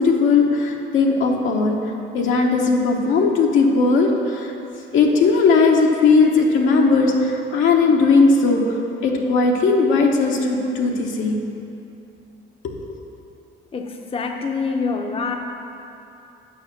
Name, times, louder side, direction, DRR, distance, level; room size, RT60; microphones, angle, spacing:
voice 1, 0.0-1.8 2.1-4.5 4.9-8.6 9.0-11.4 12.6-12.8, left 4 dB, 80° left, 0 dB, 1.0 m, -17 dB
voice 2, 13.7-15.3, left 4 dB, 30° left, 3 dB, 0.7 m, -25 dB
7.0 x 5.3 x 6.6 m, 2.8 s
cardioid pair, 90°, 20 cm